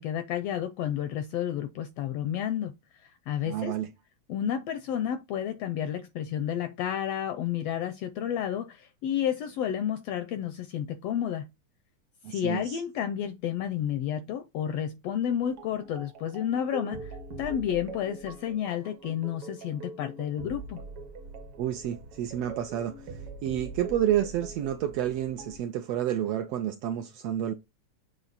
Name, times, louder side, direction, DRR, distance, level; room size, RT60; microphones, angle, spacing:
voice 1, 0.0-2.7 3.3-3.7 4.3-11.5 12.3-17.1 17.4-20.8, left 9 dB, 80° left, 1.4 m, -31 dB
voice 2, 3.4-3.9 12.2-12.8 21.6-27.5, right 11 dB, 80° right, 1.5 m, -30 dB
sound 1, 15.4-25.6, right 3 dB, 60° right, 1.6 m, -43 dB
7.4 x 3.2 x 4.0 m
omnidirectional pair, 3.3 m